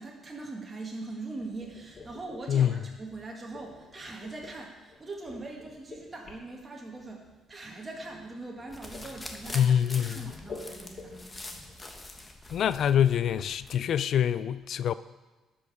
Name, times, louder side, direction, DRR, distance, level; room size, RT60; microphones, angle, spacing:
voice 1, 0.0-11.2, right 2 dB, 25° right, 1.8 m, -41 dB
sound 1, 1.4-11.9, left 3 dB, 45° left, 2.8 m, -49 dB
sound 2, 8.7-13.8, left 2 dB, 20° left, 1.4 m, -44 dB
voice 2, 9.5-10.3 12.5-14.9, left 9 dB, 65° left, 0.3 m, -25 dB
12.0 x 5.4 x 5.5 m
supercardioid pair, 60°, 0 cm